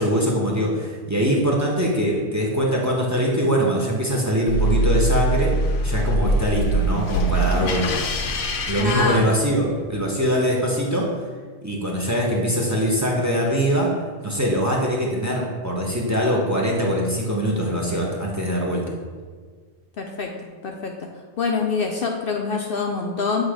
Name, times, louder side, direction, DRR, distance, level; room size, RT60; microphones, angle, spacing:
voice 1, 0.0-5.5 5.8-8.0 8.7-11.1 11.6-13.9 14.2-18.8, equal, 15° right, -2 dB, 0.8 m, -22 dB
sound 1, 4.5-9.8, right 1 dB, 90° left, 1.0 m, -23 dB
voice 2, 8.8-9.3 20.0-20.3 20.6-21.1 21.4-23.4, left 4 dB, 60° left, 2 dB, 0.7 m, -25 dB
7.9 x 2.9 x 4.9 m, 1.5 s
omnidirectional pair, 1.2 m